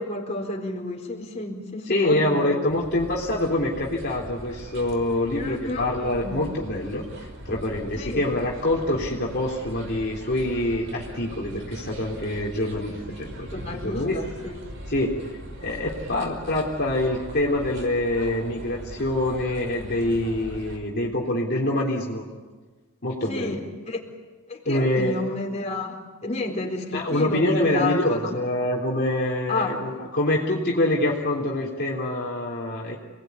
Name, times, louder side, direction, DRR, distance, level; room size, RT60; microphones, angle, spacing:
voice 1, 0.0-2.6 5.3-6.4 7.9-8.2 13.5-14.5 23.3-24.0 24.5-28.2 29.5-29.7, left 2 dB, 30° left, 0 dB, 4.3 m, -31 dB
voice 2, 1.9-7.0 7.5-13.5 13.8-14.2 14.9-15.2 15.6-22.2 23.0-23.6 24.7-25.2 26.9-33.0, left 1 dB, 45° left, -3 dB, 3.5 m, -25 dB
sound 1, 2.7-20.8, equal, 55° right, 5.3 m, -40 dB
29.0 x 20.0 x 9.6 m, 1.4 s
head